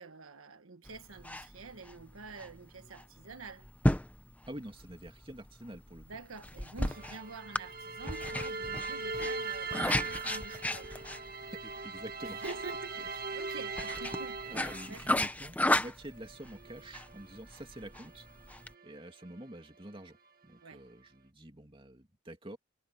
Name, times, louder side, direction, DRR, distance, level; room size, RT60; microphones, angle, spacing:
voice 1, 0.0-3.7 6.0-10.9 12.2-14.6 14.9-15.2 20.6-20.8, right 3 dB, 85° right, 1.4 m, -47 dB
sound 1, 0.9-18.7, left 1 dB, 5° left, 0.8 m, -35 dB
voice 2, 4.5-6.1 11.5-12.4 13.0-13.1 14.4-18.3 18.8-20.2 20.4-22.6, right 1 dB, 25° right, 2.6 m, -47 dB
sound 2, 6.8-15.3 16.1-19.4, right 3 dB, 45° right, 2.1 m, -41 dB
head